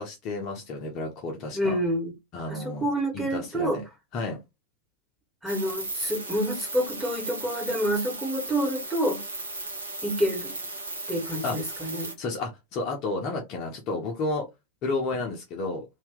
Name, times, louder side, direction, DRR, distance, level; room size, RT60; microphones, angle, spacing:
voice 1, 0.0-1.7 2.3-2.9 3.1-3.8 4.1-4.4 11.4-11.6 12.2-14.5 14.8-15.8, left 3 dB, 40° left, 1.0 m, -31 dB
voice 2, 1.5-2.1 2.5-3.8 5.4-9.2 10.0-10.5 11.1-12.1, equal, 5° right, 1.8 m, -28 dB
sound 1, 5.5-12.1, right 2 dB, 75° right, 1.0 m, -36 dB
2.9 x 2.7 x 3.6 m
figure-of-eight pair, 90°, 0 cm